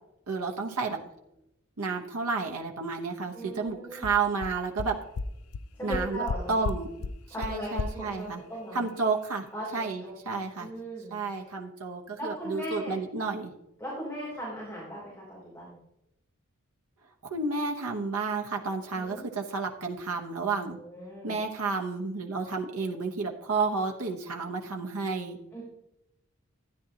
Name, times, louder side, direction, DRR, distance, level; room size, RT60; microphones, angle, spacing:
voice 1, 0.3-1.0 1.8-5.0 5.8-6.2 6.5-7.1 7.4-8.4 8.7-9.5 9.7-10.7 11.1-13.5 17.2-20.8 21.2-25.4, right 4 dB, 90° right, 2 dB, 1.0 m, -31 dB
voice 2, 3.3-4.1 5.8-6.6 7.3-8.8 9.5-10.1 10.5-11.2 12.2-13.0 13.8-15.8 18.9-19.2 20.7-21.4 25.5-25.6, right 1 dB, 10° left, -7 dB, 3.2 m, -38 dB
sound 1, 3.7-3.8 4.0-4.1 4.4-4.5 4.8-4.9 5.2-5.3 5.5-5.6 5.9-6.4 6.6-6.8 7.0-7.1 7.4-7.5 7.8-7.9, left 4 dB, 85° left, 0.5 m, -31 dB
13.0 x 9.6 x 2.9 m, 0.85 s
head